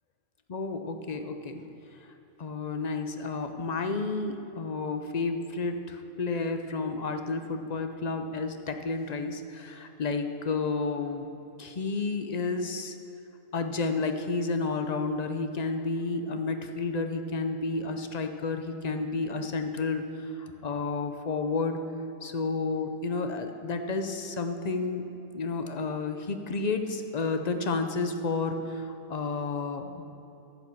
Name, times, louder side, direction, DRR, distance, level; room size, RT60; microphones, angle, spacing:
voice 1, 0.5-1.7 2.4-11.3 11.6-13.0 13.5-21.9 22.2-25.0 25.3-30.1, left 3 dB, 45° left, 6 dB, 0.5 m, -31 dB
10.5 x 6.9 x 7.4 m, 2.9 s
omnidirectional pair, 1.5 m